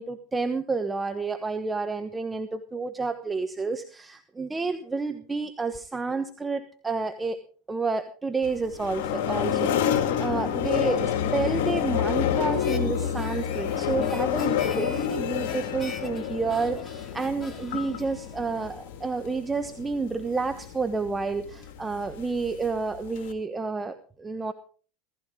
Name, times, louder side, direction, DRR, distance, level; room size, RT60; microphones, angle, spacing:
voice 1, 0.0-7.4 7.7-24.5, right 4 dB, 15° right, 8 dB, 1.2 m, -30 dB
sound 1, 8.4-23.3, left 9 dB, 70° left, 2.4 m, -29 dB
Harmonica, 12.5-19.0, left 3 dB, 25° left, 3.2 m, -45 dB
17.0 x 15.5 x 3.8 m, 0.41 s
hypercardioid pair, 100°, 0 cm